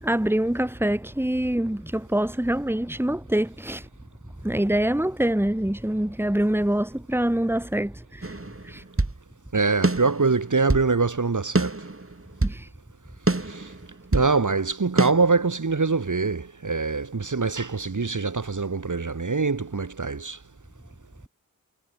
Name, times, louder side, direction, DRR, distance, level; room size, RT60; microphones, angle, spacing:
voice 1, 0.0-3.9 4.4-8.4 8.6-8.8 12.4-12.7, right 1 dB, 5° right, 1.9 m, -25 dB
sound 1, 8.2-9.2 9.8-10.9 11.5-12.6 13.3-14.3 15.0-15.1, right 2 dB, 35° right, 3.3 m, -25 dB
voice 2, 9.5-11.7 13.5-13.6 14.1-20.4, right 4 dB, 55° right, 1.5 m, -24 dB
wide cardioid pair, 40°, 36 cm